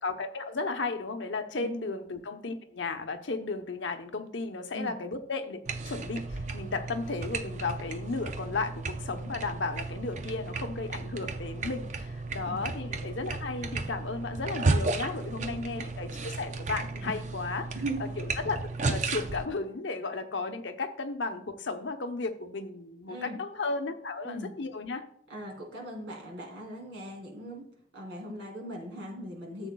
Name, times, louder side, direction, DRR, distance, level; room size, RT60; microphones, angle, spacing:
voice 1, 0.0-17.7 18.2-18.6 18.9-25.0, left 3 dB, 75° left, 6 dB, 0.8 m, -34 dB
sound 1, 5.7-19.5, right 3 dB, 40° right, 0.5 m, -34 dB
voice 2, 17.7-18.1 23.1-23.4 24.2-24.5 25.3-29.7, right 1 dB, 75° right, 0 dB, 2.9 m, -39 dB
13.0 x 7.3 x 2.3 m, 0.65 s
head